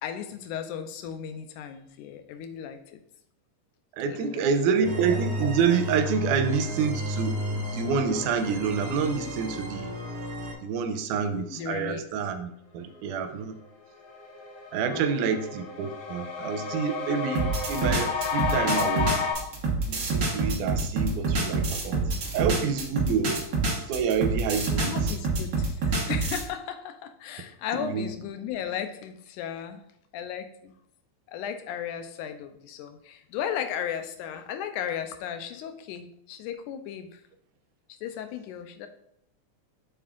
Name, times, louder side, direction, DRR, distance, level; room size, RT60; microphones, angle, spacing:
voice 1, 0.0-3.0 4.1-4.5 11.5-12.0 14.9-15.3 24.8-29.8 30.1-30.7 31.3-37.2 38.0-38.9, left 9 dB, 85° left, 8 dB, 2.1 m, -35 dB
voice 2, 4.0-9.9 10.6-13.6 14.7-19.2 19.9-22.0 22.3-23.3 23.9-25.0 27.7-28.1, right 6 dB, 90° right, 7 dB, 2.1 m, -28 dB
sound 1, 4.8-10.5, equal, 10° right, 1.4 m, -32 dB
sound 2, 13.6-13.7 14.0-19.3, left 5 dB, 60° left, 2.0 m, -31 dB
sound 3, 17.4-26.5, right 3 dB, 65° right, 0.8 m, -27 dB
7.1 x 6.9 x 2.5 m, 0.72 s
omnidirectional pair, 3.5 m